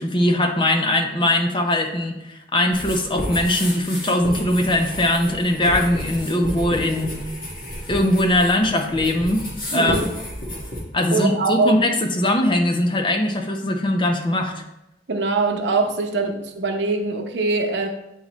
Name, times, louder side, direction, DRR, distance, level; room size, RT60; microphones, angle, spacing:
voice 1, 0.0-7.3 7.9-9.4 9.7-10.1 10.9-14.6, left 1 dB, 30° left, 3 dB, 0.6 m, -21 dB
sound 1, 2.7-10.8, left 1 dB, 50° left, 1.9 m, -31 dB
voice 2, 9.7-10.0 11.1-11.8 15.1-17.9, right 3 dB, 90° right, 4 dB, 0.8 m, -22 dB
8.5 x 3.9 x 3.1 m, 0.89 s
head